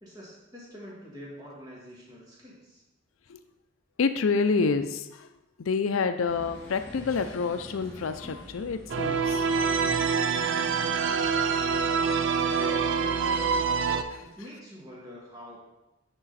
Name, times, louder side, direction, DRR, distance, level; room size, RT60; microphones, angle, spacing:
voice 1, 0.0-2.8 12.4-12.9 14.2-15.6, equal, 20° right, -6 dB, 1.8 m, -45 dB
voice 2, 4.0-5.3 5.6-9.5 9.8-10.3 11.7-11.8 13.3-13.5 14.1-14.2, left 4 dB, 80° left, 9 dB, 0.5 m, -28 dB
sound 1, 6.3-14.3, equal, 10° left, 1.4 m, -49 dB
sound 2, 8.9-14.0, right 5 dB, 65° right, 0.4 m, -26 dB
9.8 x 3.7 x 4.0 m, 0.99 s
head